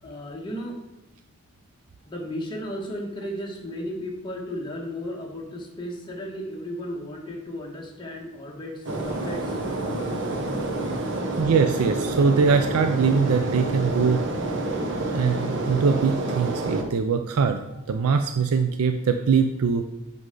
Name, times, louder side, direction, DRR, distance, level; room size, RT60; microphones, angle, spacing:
voice 1, 0.0-0.8 2.1-11.4, equal, 20° left, -1 dB, 1.3 m, -35 dB
sound 1, 8.8-16.8, right 2 dB, 55° right, 1.1 m, -28 dB
voice 2, 11.4-14.2 15.1-17.6 17.9-19.8, right 5 dB, 70° right, 7 dB, 0.4 m, -22 dB
8.1 x 5.4 x 3.8 m, 0.98 s
head